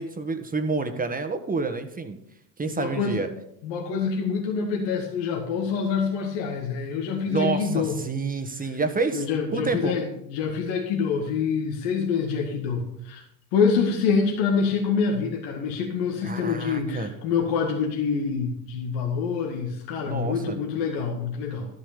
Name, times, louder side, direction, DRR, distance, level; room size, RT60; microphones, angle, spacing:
voice 1, 0.0-2.2 2.6-3.3 7.3-9.2 9.5-9.9 16.2-17.1 20.1-20.6, right 4 dB, 20° right, 7 dB, 1.6 m, -28 dB
voice 2, 2.7-3.2 3.6-8.0 9.1-13.2 13.5-21.7, left 5 dB, 70° left, 0 dB, 2.1 m, -26 dB
12.5 x 8.0 x 5.2 m, 0.77 s
hypercardioid pair, 80°, 46 cm